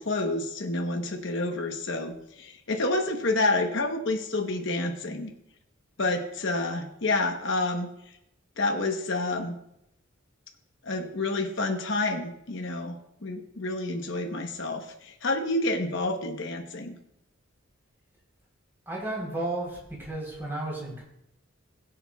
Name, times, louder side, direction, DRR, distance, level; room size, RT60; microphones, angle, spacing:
voice 1, 0.0-5.3 6.0-7.9 8.6-9.6 10.8-12.9 13.2-17.0, left 2 dB, 60° left, 3 dB, 1.0 m, -29 dB
voice 2, 18.9-21.0, right 2 dB, 10° right, -3 dB, 3.7 m, -33 dB
21.5 x 7.5 x 2.3 m, 0.81 s
head